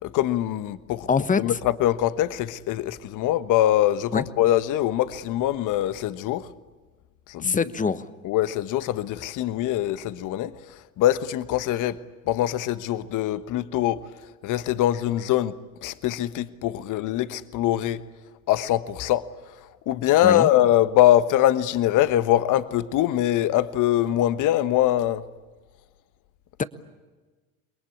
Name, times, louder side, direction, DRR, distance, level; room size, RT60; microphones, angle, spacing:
voice 1, 0.0-1.1 1.4-6.5 7.3-7.6 8.2-10.5 11.0-12.0 12.3-14.0 14.4-15.5 15.8-18.0 18.5-19.3 19.9-25.2, left 13 dB, 45° left, 1.3 m, -23 dB
voice 2, 1.1-1.6 4.1-4.3 7.4-8.1 20.2-20.5 26.6-26.7, left 5 dB, 20° left, 1.2 m, -24 dB
29.0 x 22.0 x 8.7 m
hypercardioid pair, 75°, 42 cm